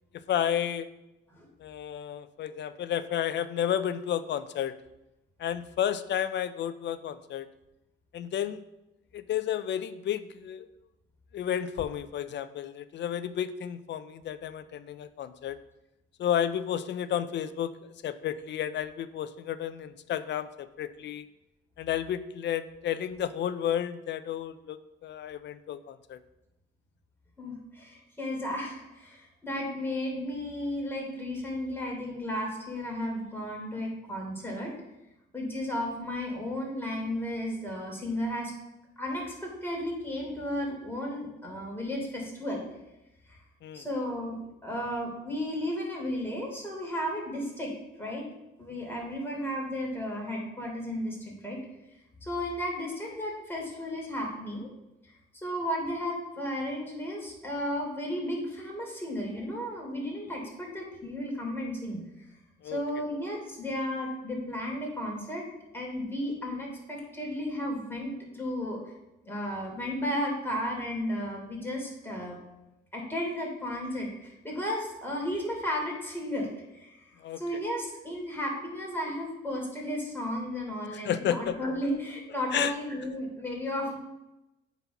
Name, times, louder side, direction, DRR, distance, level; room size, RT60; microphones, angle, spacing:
voice 1, 0.3-0.9 1.6-4.7 5.4-7.5 8.1-8.6 9.1-10.7 11.3-15.6 16.2-21.2 21.8-26.2 43.6-43.8 62.6-62.8 77.2-77.4 81.0-81.6 82.5-82.7, left 10 dB, 65° left, 13 dB, 0.5 m, -32 dB
voice 2, 27.4-34.7 35.3-38.5 39.0-42.6 43.3-43.4 43.7-47.7 48.0-48.3 48.6-51.6 52.2-54.7 55.0-62.0 62.6-65.5 65.7-68.8 69.2-72.4 72.9-76.5 76.7-84.0, left 1 dB, 10° left, -2 dB, 3.3 m, -34 dB
8.2 x 4.2 x 5.8 m, 0.95 s
cardioid pair, 90°, 20 cm